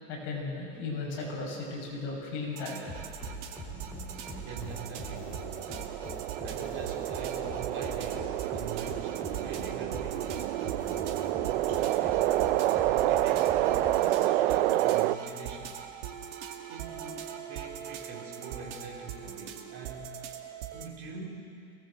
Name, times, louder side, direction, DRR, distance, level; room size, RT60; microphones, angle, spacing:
voice 1, 0.1-2.8, left 3 dB, 35° left, -3 dB, 6.6 m, -36 dB
sound 1, 2.6-20.9, right 9 dB, 85° right, 2.4 m, -42 dB
sound 2, 2.9-14.5, equal, 5° left, 2.8 m, -43 dB
voice 2, 4.3-5.4 6.4-10.6 11.5-12.3 12.7-13.5 14.0-15.8 16.7-20.1 20.7-21.5, right 4 dB, 35° right, 0 dB, 3.5 m, -44 dB
sound 3, 4.3-15.1, right 15 dB, 55° right, 0.7 m, -29 dB
23.5 x 19.0 x 7.8 m, 2.6 s
supercardioid pair, 175°, 35 cm